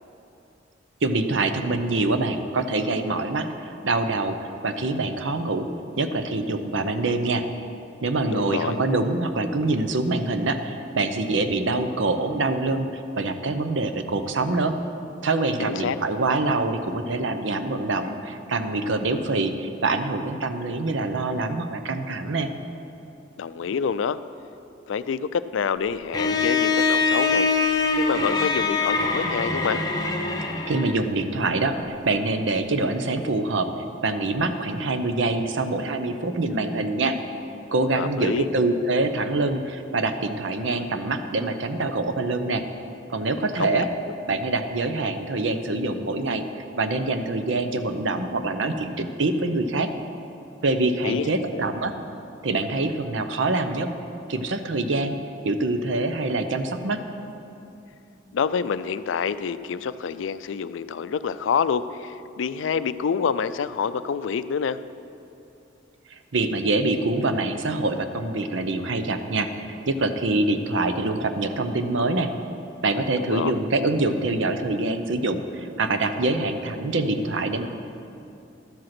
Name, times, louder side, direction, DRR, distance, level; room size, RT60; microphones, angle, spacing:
voice 1, 1.0-4.4 4.6-5.7 6.0-7.4 8.0-14.8 15.2-22.5 30.7-33.7 34.0-37.2 37.7-42.6 43.1-43.9 44.3-46.5 46.8-49.9 50.6-51.9 52.4-53.9 54.3-55.2 55.4-57.0 66.1-72.3 72.8-77.7, right 2 dB, 80° right, 8 dB, 0.7 m, -25 dB
voice 2, 8.3-8.8 15.6-16.2 23.4-24.2 24.9-27.5 28.0-29.8 38.0-38.5 43.6-43.9 51.0-51.6 58.3-64.8 73.2-73.6, left 6 dB, 80° left, 14 dB, 0.4 m, -27 dB
Bowed string instrument, 26.1-31.0, left 4 dB, 20° left, 0.9 m, -23 dB
12.0 x 7.8 x 5.9 m, 2.7 s
head